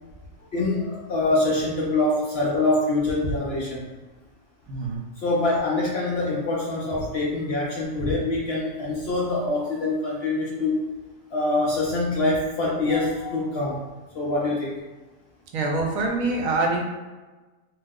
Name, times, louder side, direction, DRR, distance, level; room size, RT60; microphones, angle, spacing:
voice 1, 0.5-3.8 5.2-10.8 11.3-13.8 14.1-14.7, left 2 dB, 60° left, -4 dB, 0.7 m, -24 dB
voice 2, 4.7-5.0 15.5-16.8, right 2 dB, 80° right, 0 dB, 1.0 m, -25 dB
2.7 x 2.0 x 3.5 m, 1.2 s
omnidirectional pair, 1.4 m